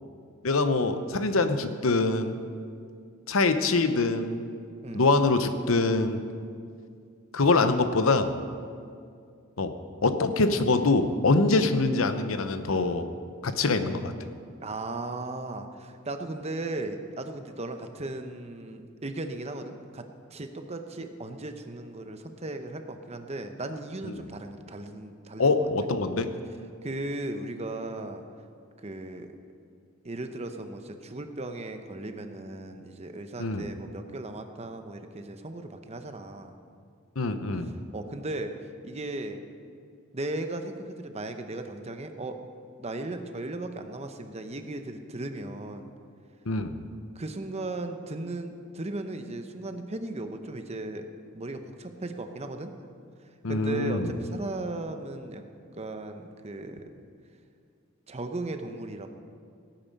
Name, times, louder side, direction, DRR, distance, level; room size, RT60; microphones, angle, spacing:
voice 1, 0.4-2.4 3.3-4.4 4.9-6.2 7.3-8.3 9.6-9.7 10.0-13.1 13.4-14.1 25.4-26.3 33.4-33.7 37.2-37.7 46.5-46.7 53.4-54.1, left 3 dB, 75° left, 9 dB, 0.8 m, -24 dB
voice 2, 14.6-25.7 26.8-28.2 28.8-29.3 30.0-36.5 37.9-38.5 38.8-39.4 40.1-42.4 42.8-45.9 47.1-51.1 51.3-52.7 53.5-55.4 55.7-56.8 58.1-59.1, right 2 dB, 30° right, 7 dB, 0.9 m, -36 dB
17.5 x 9.1 x 5.4 m, 2.3 s
head